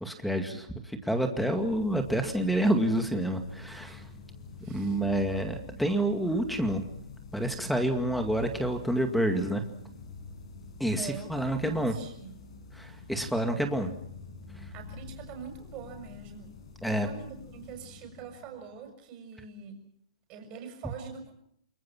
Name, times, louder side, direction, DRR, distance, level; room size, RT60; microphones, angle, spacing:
voice 1, 0.0-4.0 4.7-6.8 7.3-9.6 10.8-11.9 12.7-13.9 16.8-17.1, right 1 dB, ahead, 6 dB, 2.2 m, -28 dB
sound 1, 1.4-18.9, left 4 dB, 55° left, 7.9 m, -47 dB
voice 2, 4.6-5.2 11.0-12.4 14.7-16.6 16.8-19.8 20.3-21.3, right 6 dB, 25° right, 5 dB, 6.4 m, -44 dB
29.5 x 21.5 x 6.1 m, 0.67 s
hypercardioid pair, 160°, 4 cm